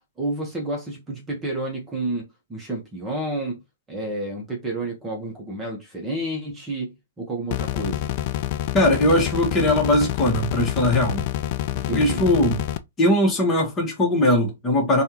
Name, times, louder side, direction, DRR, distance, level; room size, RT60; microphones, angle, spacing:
voice 1, 0.2-3.6 3.9-8.1 11.7-12.2, right 2 dB, 15° right, 1.0 m, -30 dB
sound 1, 7.5-12.8, left 13 dB, 45° left, 0.3 m, -27 dB
voice 2, 8.7-11.2 11.9-12.6 13.0-15.0, left 1 dB, 20° left, 1.2 m, -20 dB
3.4 x 2.4 x 2.9 m
hypercardioid pair, 125°, 0 cm